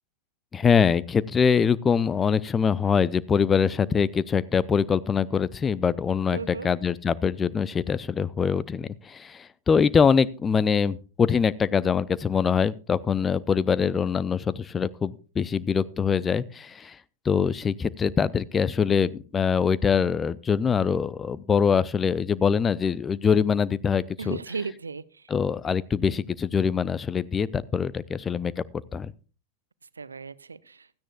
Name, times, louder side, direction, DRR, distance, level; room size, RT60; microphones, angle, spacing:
voice 1, 0.5-17.0 17.2-24.4 25.3-28.6 28.9-29.1, left 6 dB, 20° left, 19 dB, 0.5 m, -24 dB
voice 2, 6.3-6.7 24.2-25.0 30.0-30.9, right 5 dB, 75° right, 19 dB, 0.6 m, -35 dB
16.5 x 13.5 x 2.3 m, 0.36 s
figure-of-eight pair, 90°, 0 cm